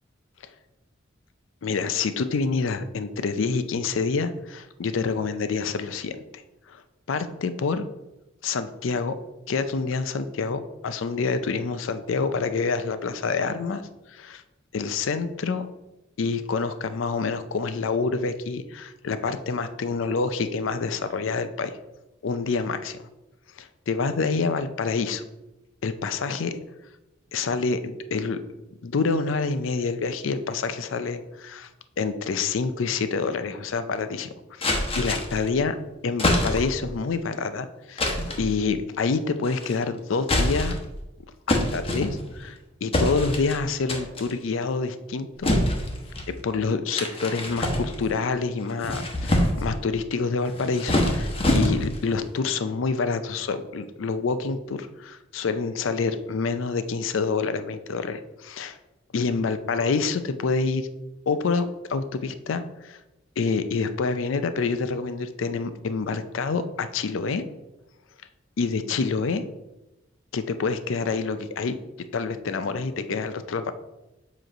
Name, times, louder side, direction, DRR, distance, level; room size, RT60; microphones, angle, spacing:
voice 1, 1.6-6.8 7.1-7.8 8.4-9.1 9.5-13.8 14.1-14.4 14.7-15.7 16.2-21.7 22.2-23.0 23.6-25.2 25.8-26.6 27.3-28.4 28.8-31.7 32.0-34.7 34.9-35.7 36.0-38.0 38.4-40.8 41.5-45.5 46.4-58.8 59.1-60.9 61.3-63.0 63.4-67.4 68.6-69.4 70.3-71.7 72.1-73.7, left 4 dB, 75° left, 11 dB, 0.5 m, -27 dB
sound 1, 34.6-35.5 36.2-36.8 38.0-38.5 39.4-39.8 40.2-40.9 41.5-42.5 42.9-43.6 43.9-44.3 45.4-46.3 46.9-48.2 48.7-49.7 50.5-52.1, left 1 dB, 30° left, 1.0 m, -25 dB
7.7 x 3.1 x 5.0 m, 0.99 s
head